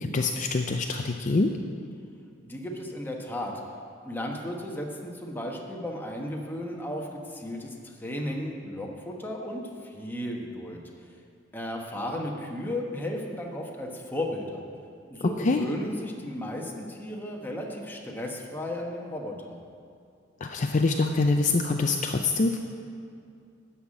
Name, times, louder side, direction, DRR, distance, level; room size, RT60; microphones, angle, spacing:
voice 1, 0.1-1.5 15.2-15.7 20.4-22.6, left 3 dB, 40° left, 4 dB, 0.5 m, -25 dB
voice 2, 2.4-3.5 4.0-10.8 11.5-14.6 15.1-19.6, left 1 dB, 10° left, 0 dB, 1.4 m, -34 dB
13.0 x 5.8 x 8.9 m, 2.4 s
head